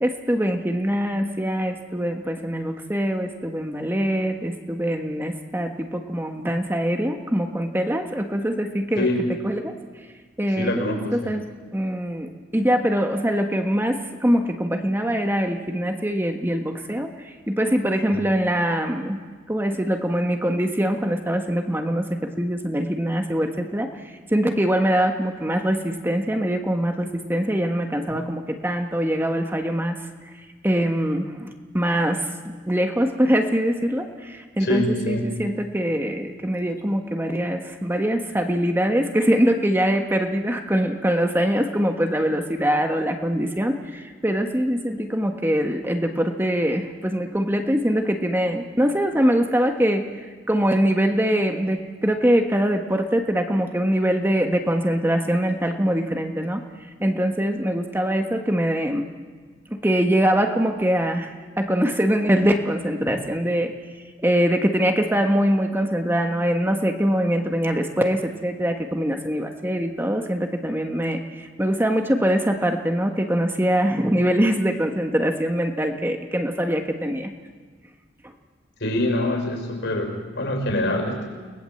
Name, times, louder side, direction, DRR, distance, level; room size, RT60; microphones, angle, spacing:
voice 1, 0.0-9.1 9.4-9.7 10.4-11.5 11.7-30.0 30.3-32.3 32.7-56.6 57.0-59.1 59.7-63.7 64.2-77.3, equal, 10° right, 4 dB, 1.4 m, -23 dB
voice 2, 9.0-9.3 10.5-11.4 18.1-18.3 34.6-35.3 63.0-63.2 78.8-81.3, left 1 dB, 65° left, 4 dB, 5.8 m, -25 dB
29.5 x 20.0 x 7.9 m, 1.5 s
head